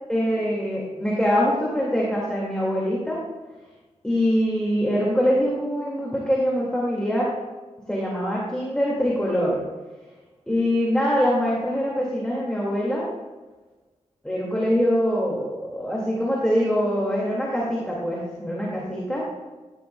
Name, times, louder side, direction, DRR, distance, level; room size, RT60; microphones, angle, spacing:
voice 1, 0.1-3.2 4.0-7.3 7.9-9.6 10.5-13.1 14.2-19.3, equal, 5° left, -5 dB, 2.1 m, -23 dB
12.5 x 10.5 x 2.3 m, 1.3 s
wide cardioid pair, 105°, 12 cm